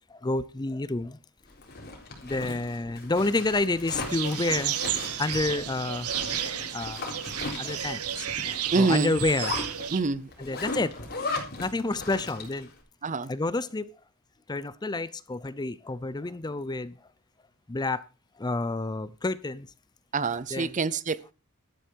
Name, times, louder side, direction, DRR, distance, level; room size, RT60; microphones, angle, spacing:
voice 1, 0.1-1.2 2.2-4.8 5.2-6.1 6.5-7.2 7.6-8.3 8.8-9.5 10.4-11.0 11.6-12.7 13.2-13.9 14.5-16.9 17.7-18.0 18.4-19.7 20.5-20.8, left 2 dB, 20° left, 0.5 m, -29 dB
Zipper (clothing), 1.5-12.7, left 3 dB, 45° left, 3.8 m, -37 dB
sound 1, 4.1-10.0, right 11 dB, 85° right, 1.1 m, -32 dB
voice 2, 8.7-9.2 9.9-10.3 13.0-13.3 20.1-21.3, right 4 dB, 35° right, 0.6 m, -26 dB
12.5 x 10.0 x 4.5 m
head